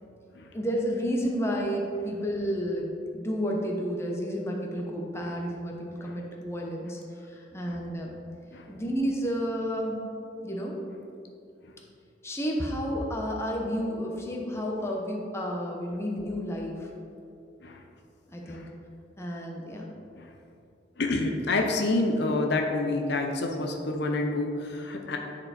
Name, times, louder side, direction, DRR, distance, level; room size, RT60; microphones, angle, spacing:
voice 1, 0.5-7.0 7.3-8.1 8.7-10.0 10.4-10.8 12.2-16.9 18.3-18.7 19.2-19.9, equal, 15° left, -1 dB, 0.9 m, -31 dB
voice 2, 21.0-25.2, left 2 dB, 65° left, 3 dB, 0.7 m, -28 dB
9.6 x 4.4 x 4.3 m, 2.6 s
head